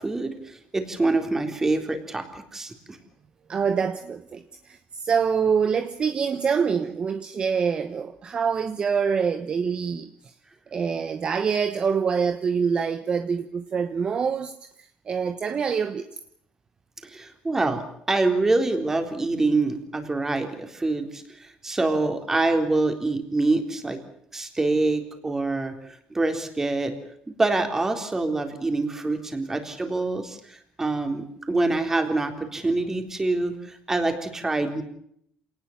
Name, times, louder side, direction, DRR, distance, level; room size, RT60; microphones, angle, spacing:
voice 1, 0.0-3.0 17.0-17.8 18.1-24.0 24.3-25.7 26.1-26.9 27.3-34.8, right 2 dB, 15° right, 3.8 m, -25 dB
voice 2, 3.5-10.3 10.7-16.1, right 6 dB, 35° right, 1.2 m, -25 dB
27.0 x 19.0 x 7.3 m
cardioid pair, 130°, 3 cm